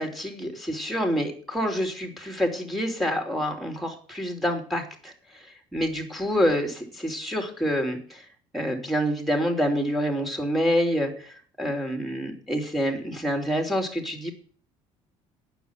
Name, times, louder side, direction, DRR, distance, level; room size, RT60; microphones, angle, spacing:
voice 1, 0.0-5.1 5.7-8.2 8.5-14.3, equal, ahead, 3 dB, 3.5 m, -27 dB
9.2 x 7.2 x 7.5 m, 0.43 s
supercardioid pair, 80°, 14 cm